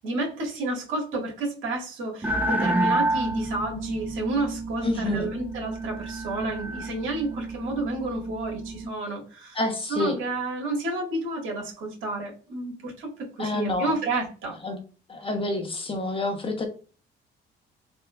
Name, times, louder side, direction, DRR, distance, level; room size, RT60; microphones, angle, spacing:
voice 1, 0.0-9.6 9.9-13.1 13.4-14.6, right 2 dB, 80° right, -1 dB, 1.6 m, -30 dB
sound 1, 2.2-8.9, right 2 dB, 10° right, 0.5 m, -30 dB
voice 2, 4.8-5.3 9.5-10.2 13.4-13.9 14.6-14.8 15.1-16.7, left 2 dB, 25° left, 4 dB, 0.9 m, -28 dB
3.5 x 2.7 x 2.3 m, 0.36 s
cardioid pair, 90°, 20 cm